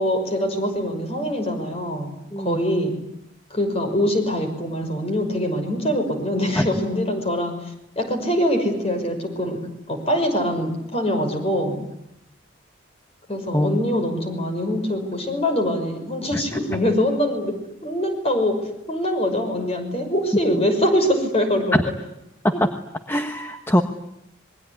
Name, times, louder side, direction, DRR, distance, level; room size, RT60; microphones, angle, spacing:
voice 1, 0.0-3.0 3.5-7.5 8.0-9.6 9.9-11.8 13.3-21.8, equal, 30° left, 5 dB, 5.9 m, -23 dB
voice 2, 2.3-2.6 6.5-6.7 13.5-13.8 16.3-16.4 21.7-21.8 22.4-22.5 23.1-23.8, equal, 10° left, 6 dB, 1.2 m, -21 dB
27.0 x 22.5 x 9.8 m, 0.82 s
head